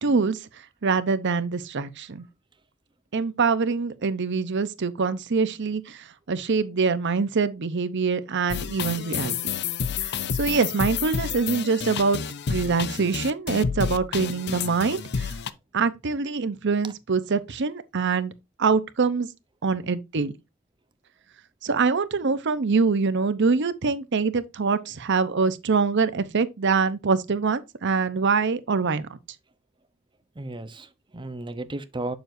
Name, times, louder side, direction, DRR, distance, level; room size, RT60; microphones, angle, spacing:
voice 1, 0.0-0.4 0.8-2.2 3.1-9.4 10.0-12.2 12.5-15.3 15.7-18.3 18.6-19.3 19.6-20.3 21.6-29.2, right 4 dB, 60° right, 0.7 m, -24 dB
sound 1, 8.5-15.5, left 6 dB, 55° left, 0.6 m, -30 dB
voice 2, 30.4-32.1, right 2 dB, 25° right, 0.8 m, -34 dB
7.8 x 6.9 x 2.6 m
head